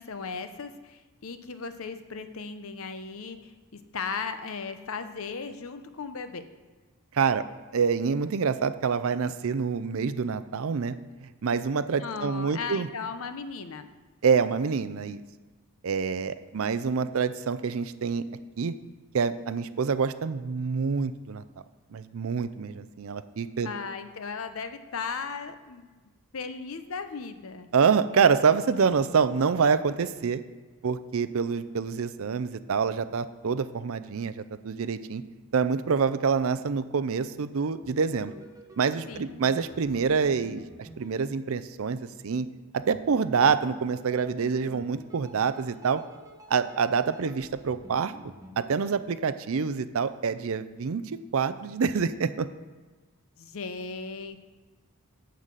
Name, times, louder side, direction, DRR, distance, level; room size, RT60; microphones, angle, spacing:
voice 1, 0.0-6.4 12.0-13.9 23.6-25.9 26.3-27.7 39.1-39.4 53.4-54.4, left 5 dB, 70° left, 9 dB, 0.7 m, -36 dB
voice 2, 7.7-10.9 11.4-12.9 14.2-15.2 15.8-18.2 18.6-18.7 19.1-21.4 21.9-23.7 27.7-30.4 30.8-35.2 35.5-38.3 38.8-42.5 42.7-46.0 46.5-48.1 48.6-51.0 51.3-52.5, right 5 dB, 70° right, 12 dB, 0.5 m, -26 dB
sound 1, 37.8-42.1 42.8-48.9, right 1 dB, 15° right, 1.0 m, -50 dB
11.5 x 4.1 x 7.5 m, 1.3 s
head